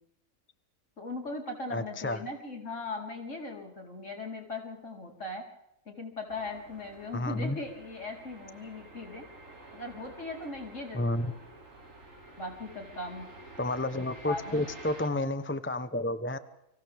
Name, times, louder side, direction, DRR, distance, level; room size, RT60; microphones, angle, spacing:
voice 1, 1.0-5.4 5.9-9.2 9.7-11.4 12.4-13.3 14.3-14.6, left 2 dB, 60° left, 1 dB, 4.7 m, -39 dB
voice 2, 1.7-2.2 7.1-7.6 10.9-11.3 13.6-16.4, left 1 dB, 10° left, 10 dB, 0.8 m, -30 dB
sound 1, 6.3-15.1, right 2 dB, 65° right, 3.8 m, -50 dB
29.5 x 25.5 x 3.6 m, 0.84 s
omnidirectional pair, 1.5 m